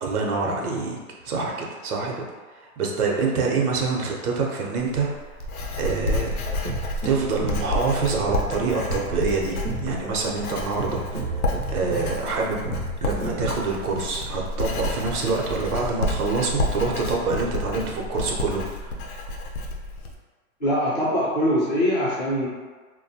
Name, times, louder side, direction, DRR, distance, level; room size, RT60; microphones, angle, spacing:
voice 1, 0.0-1.0 1.2-2.2 2.6-5.1 5.8-6.3 7.0-11.3 11.7-12.6 13.0-18.9, right 4 dB, 90° right, -1 dB, 0.7 m, -26 dB
Writing, 4.8-20.1, left 1 dB, 80° left, 0.6 m, -30 dB
sound 1, 6.5-13.5, right 2 dB, 35° right, 0.4 m, -33 dB
voice 2, 20.6-22.5, equal, 30° left, -10 dB, 0.6 m, -23 dB
2.3 x 2.1 x 2.7 m, 1.4 s
hypercardioid pair, 170°, 44 cm